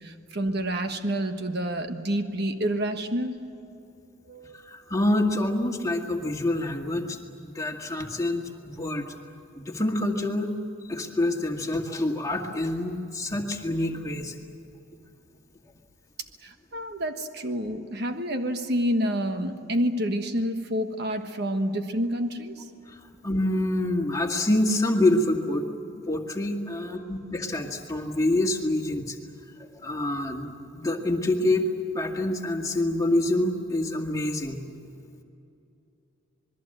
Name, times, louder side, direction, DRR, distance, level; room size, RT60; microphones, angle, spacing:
voice 1, 0.0-3.4 4.3-4.8 16.4-22.7, equal, 50° right, 6 dB, 1.4 m, -28 dB
voice 2, 4.5-7.2 7.4-9.1 9.6-10.5 10.8-14.3 22.9-25.6 26.1-29.2 29.6-31.7 31.9-34.6, left 1 dB, 15° left, 1 dB, 2.0 m, -26 dB
27.0 x 21.5 x 7.9 m, 2.7 s
head